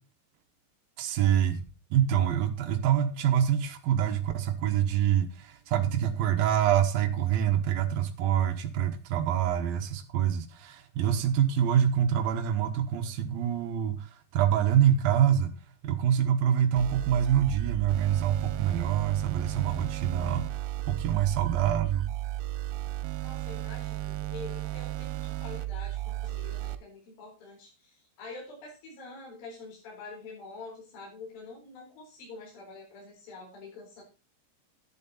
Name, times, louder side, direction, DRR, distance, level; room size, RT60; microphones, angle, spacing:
voice 1, 1.0-1.6 1.9-15.5 15.8-22.1, right 10 dB, 70° right, 7 dB, 2.5 m, -26 dB
sound 1, 16.8-26.8, right 15 dB, 85° right, 3.1 m, -34 dB
voice 2, 23.2-34.0, left 3 dB, 50° left, -3 dB, 5.7 m, -46 dB
11.0 x 10.5 x 4.2 m, 0.31 s
omnidirectional pair, 5.3 m